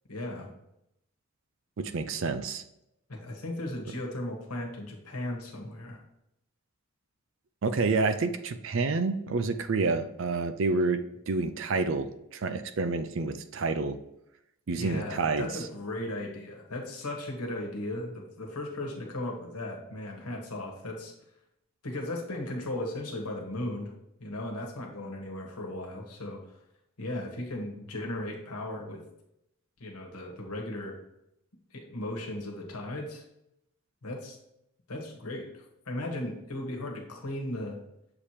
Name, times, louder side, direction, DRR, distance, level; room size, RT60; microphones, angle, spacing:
voice 1, 0.1-0.5 3.1-6.0 14.8-21.1 21.8-23.9 24.2-26.4 27.0-29.0 29.8-31.0 31.7-33.2 34.0-34.4 34.9-37.8, left 1 dB, 85° left, 1 dB, 1.3 m, -36 dB
voice 2, 1.8-2.6 7.6-11.0 11.3-14.0 14.7-15.5, right 3 dB, 60° right, 10 dB, 0.4 m, -28 dB
6.9 x 2.9 x 4.8 m, 0.81 s
head